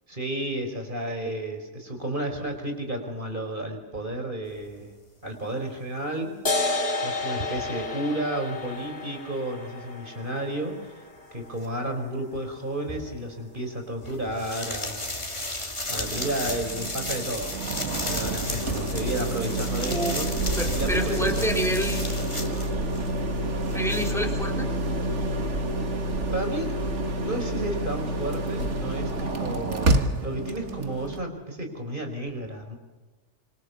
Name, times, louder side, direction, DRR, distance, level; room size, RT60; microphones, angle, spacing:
voice 1, 0.1-5.0 5.2-6.4 7.0-11.0 11.3-15.0 15.9-17.5 18.0-20.3 20.7-21.4 26.3-26.8 27.2-32.8, right 1 dB, 45° right, 4 dB, 4.9 m, -32 dB
sound 1, 6.5-13.4, left 2 dB, 55° left, 3.0 m, -32 dB
sound 2, 11.6-11.7 12.9-13.1 14.0-23.1 23.4-24.2, left 1 dB, 25° left, 2.8 m, -34 dB
sound 3, 16.0-31.2, right 1 dB, 80° right, 2.1 m, -28 dB
voice 2, 19.8-20.2 20.6-22.1 23.7-24.7, equal, ahead, 2 dB, 3.9 m, -28 dB
26.5 x 25.0 x 7.1 m, 1.2 s
omnidirectional pair, 1.2 m